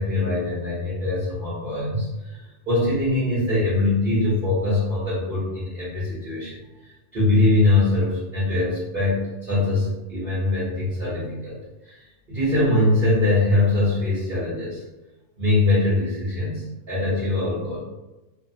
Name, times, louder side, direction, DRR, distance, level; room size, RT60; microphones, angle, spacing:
voice 1, 0.0-6.6 7.1-11.6 11.8-14.8 15.4-17.8, left 2 dB, 40° right, -11 dB, 0.9 m, -22 dB
2.7 x 2.1 x 2.6 m, 1.0 s
omnidirectional pair, 1.5 m